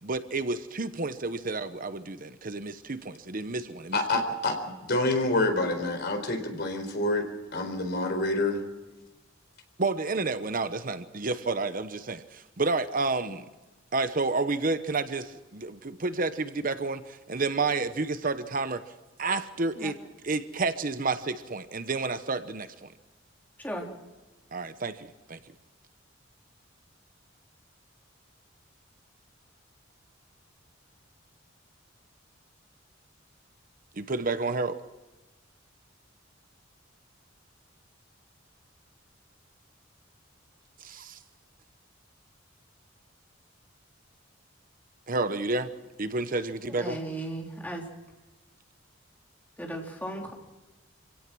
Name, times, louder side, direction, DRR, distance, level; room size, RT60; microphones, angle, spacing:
voice 1, 0.0-4.0 9.8-13.5 13.9-18.8 19.2-20.0 20.2-22.9 24.5-25.4 33.9-34.8 40.8-41.2 45.1-45.7 46.0-47.0, right 3 dB, 45° right, 11 dB, 1.0 m, -30 dB
voice 2, 3.9-7.3 7.5-8.6, left 2 dB, 55° left, 6 dB, 4.2 m, -27 dB
voice 3, 46.8-47.8 49.6-50.3, right 1 dB, 10° left, 0 dB, 3.4 m, -36 dB
26.5 x 17.0 x 6.2 m, 1.1 s
head